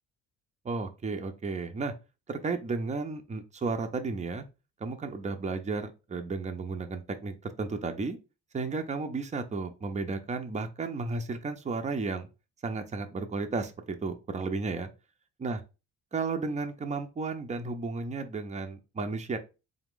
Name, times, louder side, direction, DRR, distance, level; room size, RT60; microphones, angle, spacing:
voice 1, 0.6-1.9 2.3-4.5 4.8-8.2 8.5-12.3 12.6-14.9 15.4-15.6 16.1-19.4, right 4 dB, 25° right, 0.6 m, -33 dB
3.9 x 2.5 x 3.6 m
cardioid pair, 90°, 30 cm